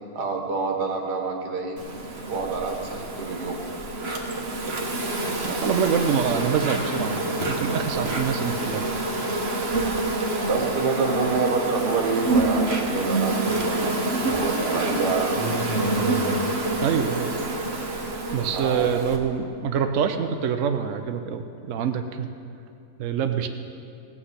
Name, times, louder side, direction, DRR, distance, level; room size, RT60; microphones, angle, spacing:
voice 1, 0.1-1.8 2.3-3.6 10.4-13.8 14.3-15.7 18.5-18.9, right 4 dB, 85° right, 1 dB, 2.0 m, -27 dB
Insect, 1.8-19.2, right 2 dB, 40° right, 1.3 m, -27 dB
voice 2, 5.4-8.8 16.8-17.3 18.3-22.3 23.0-23.5, right 7 dB, 60° right, 7 dB, 0.9 m, -25 dB
17.0 x 6.1 x 8.1 m, 2.5 s
omnidirectional pair, 1.7 m